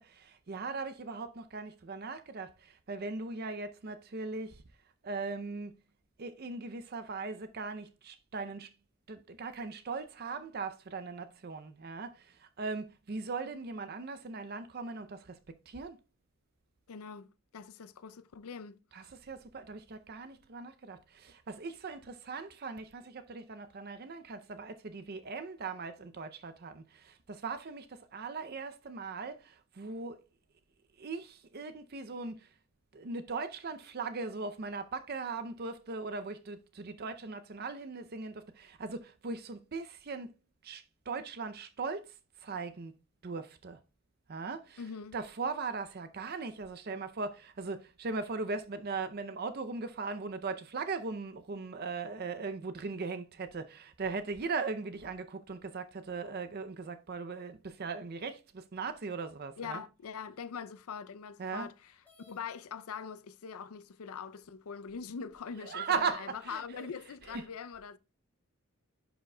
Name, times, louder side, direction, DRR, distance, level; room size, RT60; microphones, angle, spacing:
voice 1, 0.0-4.6 5.0-5.7 6.2-8.7 9.1-15.4 15.7-16.0 18.9-30.2 31.0-32.5 32.9-40.3 40.6-43.0 43.2-43.8 44.3-59.8 61.4-61.7 65.6-66.9 67.2-67.4, right 4 dB, 45° right, 0.5 m, -39 dB
voice 2, 16.9-19.1 44.8-45.2 59.6-61.9 62.3-68.0, left 6 dB, 75° left, 0.5 m, -43 dB
sound 1, 62.0-62.4 63.4-63.5 64.1-64.2 64.9-65.6, left 2 dB, 10° left, 1.3 m, -64 dB
11.0 x 5.1 x 2.2 m
head